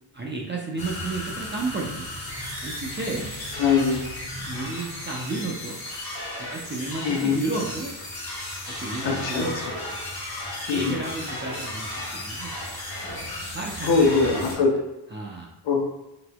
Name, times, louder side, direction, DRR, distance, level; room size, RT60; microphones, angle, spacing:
voice 1, 0.1-2.1 2.6-3.3 4.4-5.8 6.4-8.1 8.7-9.6 9.9-10.0 10.7-12.5 13.5-14.6 15.1-15.5, right 3 dB, 25° right, -3 dB, 0.5 m, -32 dB
sound 1, 0.8-14.5, left 1 dB, 50° left, 1.4 m, -34 dB
voice 2, 3.6-4.0 7.0-7.4 9.0-9.5 10.7-11.0 13.8-14.8 15.6-15.8, left 5 dB, 70° left, 1 dB, 0.7 m, -22 dB
4.0 x 2.7 x 2.2 m, 0.93 s
cardioid pair, 60°, 46 cm